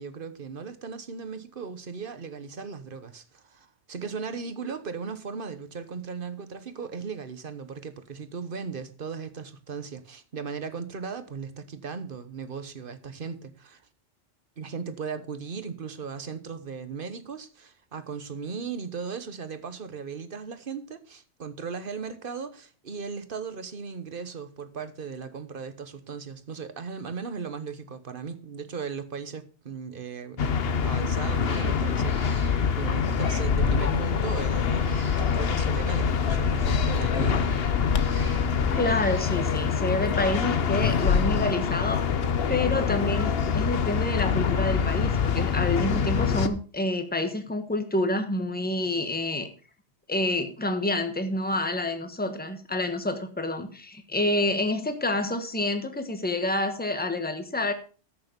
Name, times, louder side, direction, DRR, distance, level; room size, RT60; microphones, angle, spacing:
voice 1, 0.0-13.8 14.6-37.6, right 5 dB, 50° right, 1.3 m, -37 dB
sound 1, 30.4-46.5, left 6 dB, 60° left, 1.1 m, -25 dB
Cat, 30.7-31.0 31.4-33.4 34.5-35.6 36.9-39.5, right 1 dB, 15° right, 2.2 m, -49 dB
Bird, 33.4-41.4, left 6 dB, 85° left, 1.2 m, -30 dB
voice 2, 38.8-42.0 42.5-49.5 50.1-57.7, left 2 dB, 10° left, 1.3 m, -28 dB
14.0 x 6.8 x 5.2 m
omnidirectional pair, 1.2 m